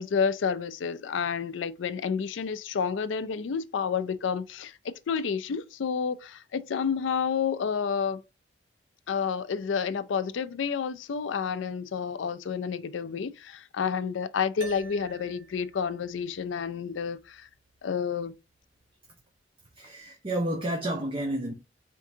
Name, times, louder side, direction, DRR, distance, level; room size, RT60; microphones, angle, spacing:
voice 1, 0.0-8.2 9.1-17.5 17.8-18.3, left 6 dB, 90° left, 0.4 m, -30 dB
sound 1, 14.6-19.2, right 1 dB, 80° right, 1.0 m, -49 dB
voice 2, 19.8-21.5, right 1 dB, 30° right, 0.8 m, -30 dB
4.4 x 3.7 x 2.7 m
head